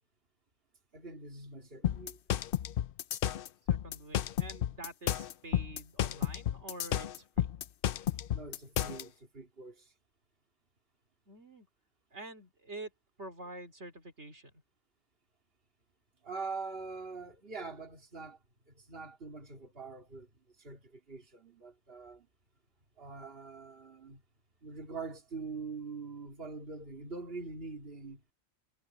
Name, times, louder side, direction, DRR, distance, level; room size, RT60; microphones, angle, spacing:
voice 1, 0.9-2.2 8.3-9.9 16.2-18.4 18.7-20.3 20.6-22.3 23.0-24.2 24.6-28.2, right 4 dB, 60° right, 3.2 m, -44 dB
sound 1, 1.8-9.0, left 11 dB, 60° left, 0.7 m, -32 dB
voice 2, 3.7-7.5 11.3-11.7 12.1-12.9 13.2-14.5, right 2 dB, 90° right, 3.9 m, -47 dB
omnidirectional pair, 1.1 m